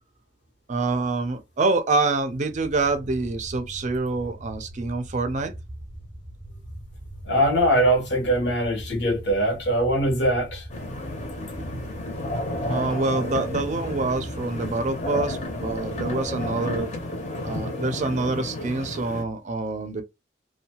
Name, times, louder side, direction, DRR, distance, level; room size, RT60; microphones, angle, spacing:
voice 1, 0.7-5.5 12.7-16.9 17.4-20.0, right 3 dB, 40° right, 0.4 m, -26 dB
sound 1, 2.5-16.8, right 1 dB, 5° right, 0.7 m, -41 dB
voice 2, 7.3-10.6, right 1 dB, 70° left, 0.9 m, -22 dB
sound 2, 10.7-19.2, left 1 dB, 40° left, 0.7 m, -32 dB
2.6 x 2.2 x 2.8 m
head